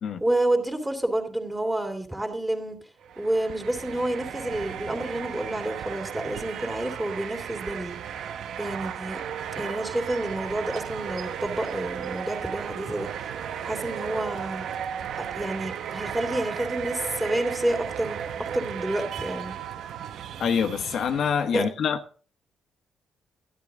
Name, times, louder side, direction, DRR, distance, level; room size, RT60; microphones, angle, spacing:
voice 1, 0.2-2.8 3.2-8.0 8.6-9.2 9.5-13.3 13.6-14.6 15.2-19.5 21.5-21.7, right 1 dB, 10° right, 3.1 m, -29 dB
sound 1, 3.0-21.5, right 8 dB, 75° right, 0.8 m, -35 dB
voice 2, 20.4-22.0, left 7 dB, 65° left, 1.2 m, -25 dB
12.5 x 11.0 x 3.8 m
cardioid pair, 90°, 0 cm